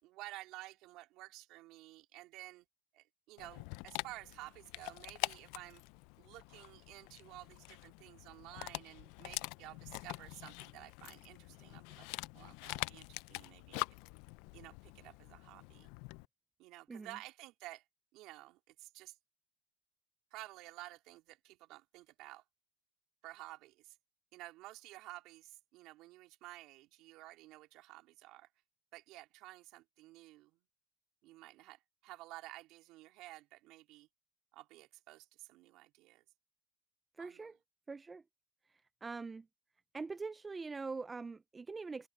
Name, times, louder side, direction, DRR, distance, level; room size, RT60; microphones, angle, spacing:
voice 1, 0.0-2.7 2.9-5.8 6.2-12.1 12.3-13.8 14.5-15.9 16.6-17.8 18.1-19.1 20.3-22.4 23.2-23.9 24.3-28.5 28.9-30.6 31.2-34.1 34.5-36.2 37.2-37.5, right 18 dB, 55° right, 3.3 m, -52 dB
Dog, 3.4-16.3, left 24 dB, 65° left, 0.5 m, -45 dB
voice 2, 37.2-37.6 37.9-38.2 39.0-39.5 39.9-42.1, right 4 dB, 15° right, 0.5 m, -43 dB
supercardioid pair, 125°, 0 cm